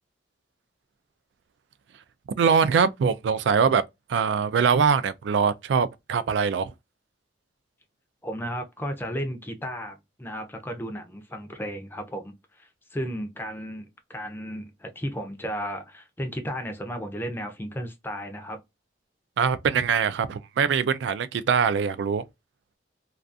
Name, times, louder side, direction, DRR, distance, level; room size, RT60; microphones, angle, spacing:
voice 1, 2.4-3.8 4.1-6.7 19.4-22.2, right 6 dB, 75° right, 0.3 m, -23 dB
voice 2, 8.2-18.6, equal, 10° left, 0.4 m, -34 dB
2.3 x 2.3 x 2.5 m
head